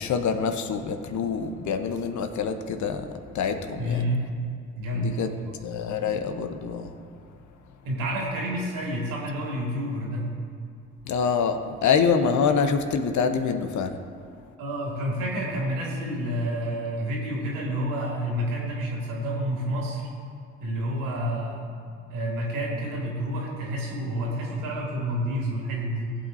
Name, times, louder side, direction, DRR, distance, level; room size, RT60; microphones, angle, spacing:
voice 1, 0.0-3.1 3.3-4.0 4.9-5.3 5.6-7.0 11.1-14.0, left 6 dB, 55° left, 8 dB, 1.0 m, -26 dB
voice 2, 3.8-4.3 4.7-5.6 7.8-10.3 14.6-20.1 20.6-21.7 22.1-26.2, equal, 70° right, -3 dB, 2.9 m, -29 dB
18.5 x 8.5 x 2.8 m, 2.5 s
figure-of-eight pair, 45°, 35 cm